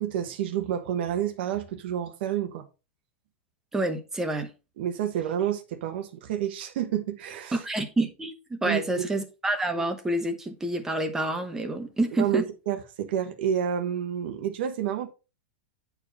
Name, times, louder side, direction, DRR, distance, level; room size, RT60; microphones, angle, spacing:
voice 1, 0.0-2.6 4.8-7.6 8.6-9.1 12.1-15.1, right 9 dB, 60° right, 1.2 m, -29 dB
voice 2, 3.7-4.5 7.5-12.4, right 1 dB, 5° right, 0.9 m, -28 dB
8.6 x 4.8 x 4.0 m
supercardioid pair, 160°, 7 cm